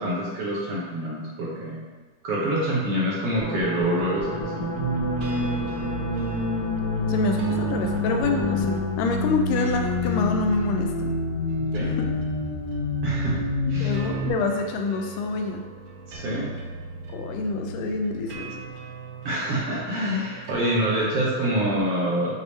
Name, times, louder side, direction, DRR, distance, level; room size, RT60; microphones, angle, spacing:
voice 1, 0.0-1.8 2.2-4.8 11.6-11.9 13.0-13.4 13.7-13.9 16.1-16.5 19.2-22.4, right 1 dB, 65° right, -6 dB, 1.6 m, -26 dB
sound 1, 3.4-9.1, equal, 60° left, 1.8 m, -34 dB
sound 2, 3.6-21.8, right 5 dB, 85° right, 1.3 m, -41 dB
sound 3, 4.8-14.3, left 2 dB, 40° left, 1.8 m, -27 dB
voice 2, 7.1-11.1 12.0-12.1 13.7-15.6 17.1-18.6, left 4 dB, 90° left, 4 dB, 2.2 m, -27 dB
6.8 x 3.4 x 4.1 m, 1.4 s
omnidirectional pair, 3.7 m